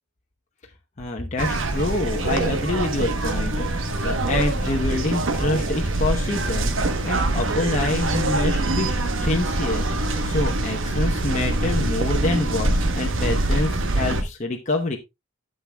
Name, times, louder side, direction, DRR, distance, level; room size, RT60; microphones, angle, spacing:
voice 1, 1.0-6.7 7.0-15.0, left 2 dB, 35° left, 1 dB, 0.9 m, -27 dB
sound 1, 1.0-1.1 1.4-1.9 2.4-3.9 4.2-4.7 5.3-6.7 7.1-7.6 8.1-9.6 9.9-10.4 11.0-11.1, equal, 20° right, 1.3 m, -36 dB
sound 2, 1.4-14.2, right 2 dB, 65° right, 1.0 m, -24 dB
12.0 x 7.8 x 2.3 m, 0.22 s
head